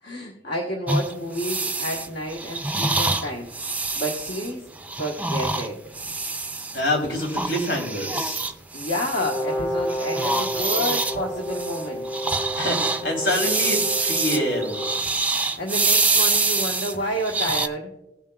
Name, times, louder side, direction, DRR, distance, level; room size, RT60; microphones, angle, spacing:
voice 1, 0.0-4.7 4.9-5.8 8.7-12.1 15.3-17.9, equal, 65° left, 0 dB, 1.3 m, -30 dB
sound 1, 0.9-6.8 7.2-9.6 9.9-17.7, right 3 dB, 10° right, 0.4 m, -26 dB
voice 2, 6.7-8.5 12.5-14.8, left 1 dB, 80° left, 1 dB, 3.2 m, -26 dB
Brass instrument, 9.2-15.0, equal, 25° left, 1.6 m, -31 dB
18.5 x 7.2 x 2.3 m, 0.97 s
head